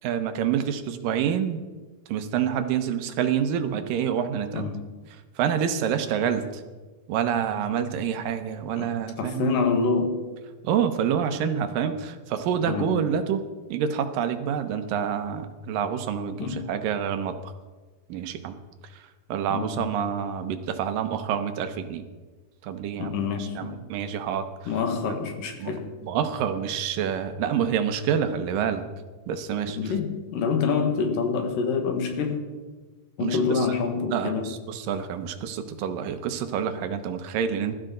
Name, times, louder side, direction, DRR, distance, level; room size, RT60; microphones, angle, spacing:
voice 1, 0.0-1.6 2.1-4.7 5.4-6.5 7.1-9.5 10.6-13.4 13.7-17.5 18.1-18.6 19.3-22.0 22.6-24.5 25.6-25.7 26.0-28.8 29.3-29.9 33.2-33.6 34.1-37.7, right 8 dB, 85° right, 8 dB, 2.7 m, -27 dB
voice 2, 4.5-4.9 8.8-8.9 9.2-10.2 12.6-13.1 16.4-16.7 19.5-19.9 23.0-23.8 24.7-25.9 29.8-32.4 33.2-34.6, left 5 dB, 85° left, 4 dB, 3.4 m, -26 dB
20.5 x 13.0 x 3.9 m, 1.3 s
omnidirectional pair, 3.9 m